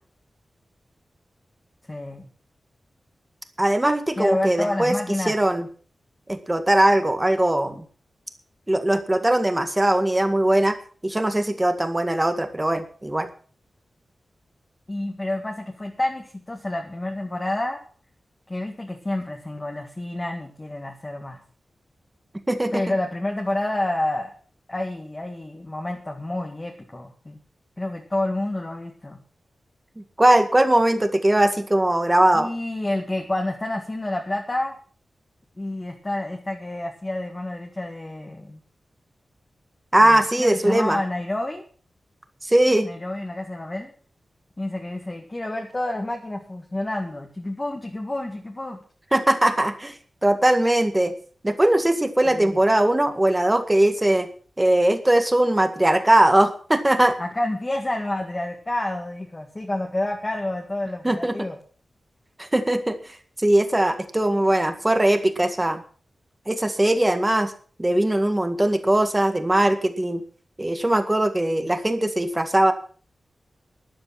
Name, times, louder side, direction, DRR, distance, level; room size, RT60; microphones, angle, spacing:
voice 1, 1.9-2.3 4.2-5.3 14.9-17.8 18.5-21.4 22.7-24.3 24.7-27.4 27.8-29.2 32.3-34.7 35.6-38.6 40.0-41.6 42.8-43.9 44.6-48.8 52.3-52.6 57.2-61.6, left 1 dB, 20° left, 1 dB, 1.8 m, -29 dB
voice 2, 3.6-5.0 5.2-5.7 6.3-7.9 8.7-10.8 11.0-13.3 22.5-22.8 30.2-32.5 39.9-41.0 42.4-42.9 49.1-49.9 50.2-51.1 51.4-54.3 54.6-57.2 61.0-61.4 62.4-65.8 66.5-67.5 67.8-70.2 70.6-72.7, right 1 dB, 15° right, 7 dB, 1.8 m, -20 dB
13.0 x 11.5 x 6.0 m, 0.42 s
wide cardioid pair, 165°, 0 cm